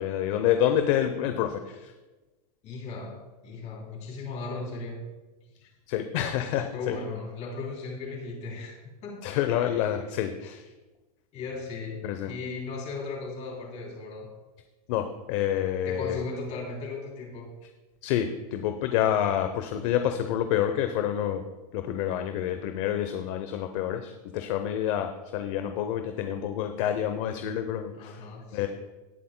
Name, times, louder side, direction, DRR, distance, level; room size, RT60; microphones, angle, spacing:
voice 1, 0.0-1.9 5.9-7.0 9.2-10.7 12.0-12.3 14.9-16.2 18.0-21.4 21.7-28.2 28.5-28.7, left 10 dB, 50° left, 7 dB, 0.8 m, -28 dB
voice 2, 2.6-3.2 3.4-5.0 6.7-8.8 9.0-10.0 11.3-14.3 15.8-17.5 27.9-28.7, left 3 dB, 35° left, 0 dB, 3.1 m, -37 dB
18.5 x 8.3 x 2.2 m, 1.2 s
supercardioid pair, 140°, 21 cm